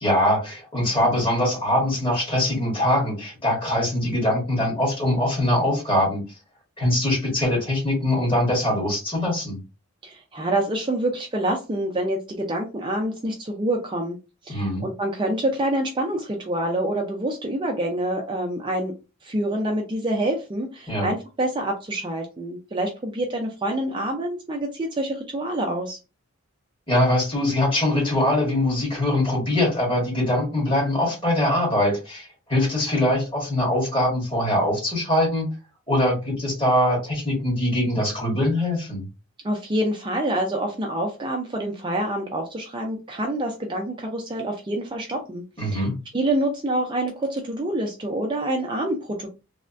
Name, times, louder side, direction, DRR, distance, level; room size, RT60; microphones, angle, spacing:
voice 1, 0.0-6.2 6.8-9.6 14.5-14.8 20.9-21.1 26.9-35.5 35.9-39.1 45.6-46.0, left 1 dB, 25° left, -2 dB, 1.5 m, -22 dB
voice 2, 10.0-14.2 14.4-18.9 19.2-26.0 39.4-45.9 46.1-49.3, right 1 dB, 20° right, 1 dB, 0.4 m, -27 dB
3.2 x 2.1 x 2.5 m, 0.29 s
head